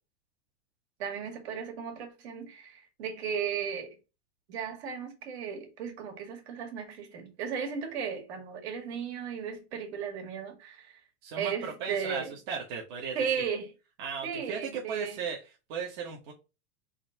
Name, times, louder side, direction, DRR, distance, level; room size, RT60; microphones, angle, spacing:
voice 1, 1.0-4.0 4.5-11.0 11.4-12.3 13.1-13.7 14.2-15.2, right 7 dB, 65° right, 2.0 m, -35 dB
voice 2, 11.2-13.5 14.0-15.4 15.7-16.3, right 6 dB, 45° right, 1.0 m, -36 dB
4.0 x 2.6 x 4.4 m
supercardioid pair, 165°, 35 cm